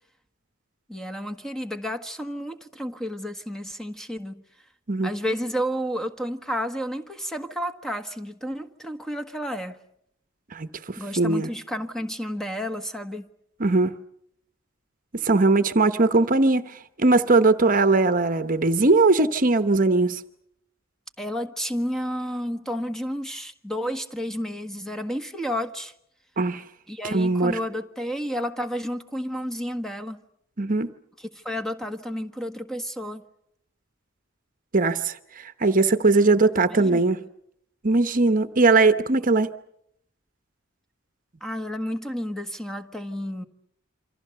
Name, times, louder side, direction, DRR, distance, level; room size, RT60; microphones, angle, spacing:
voice 1, 0.9-4.4 5.0-9.8 11.0-13.3 21.2-25.9 26.9-30.2 31.2-33.2 36.7-37.0 41.4-43.4, equal, 5° left, 1.5 m, -31 dB
voice 2, 10.5-11.5 13.6-13.9 15.2-16.6 17.0-20.2 26.4-26.6 27.1-27.5 30.6-30.9 34.7-37.2 37.8-39.5, right 3 dB, 45° right, 1.0 m, -20 dB
27.5 x 25.5 x 6.8 m
head